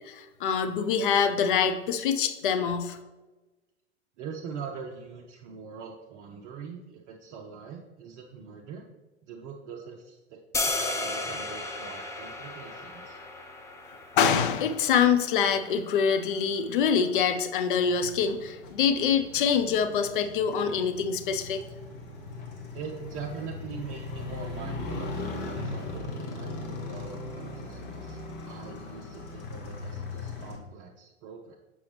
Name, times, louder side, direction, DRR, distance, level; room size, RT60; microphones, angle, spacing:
voice 1, 0.0-3.0 14.1-21.6, left 7 dB, 50° left, 8 dB, 0.7 m, -25 dB
voice 2, 4.2-8.8 9.2-13.2 22.7-31.6, right 5 dB, 35° right, -1 dB, 0.7 m, -42 dB
sound 1, 10.5-16.6, left 2 dB, 10° left, 0.5 m, -35 dB
Motorcycle, 18.0-30.6, left 3 dB, 30° left, 1.2 m, -39 dB
7.0 x 5.4 x 3.3 m, 1.1 s
figure-of-eight pair, 90°, 34 cm